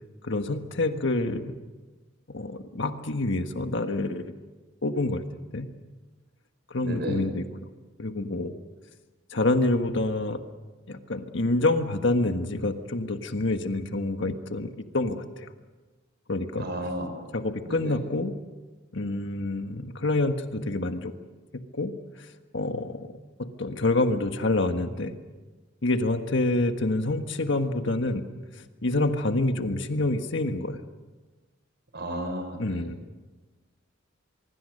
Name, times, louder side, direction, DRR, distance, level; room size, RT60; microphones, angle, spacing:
voice 1, 0.2-1.5 2.3-4.3 4.8-5.2 5.5-5.7 6.7-7.4 8.0-8.5 9.3-10.4 10.9-15.5 16.3-16.7 17.3-18.3 18.9-21.1 21.7-22.3 22.5-23.1 23.4-25.1 25.8-28.2 28.8-30.8 32.6-33.0, left 2 dB, 60° left, 7 dB, 1.5 m, -27 dB
voice 2, 6.8-7.3 16.5-17.3 17.6-18.0 31.9-32.9, equal, 55° right, 5 dB, 5.7 m, -33 dB
24.5 x 23.0 x 6.6 m, 1.3 s
head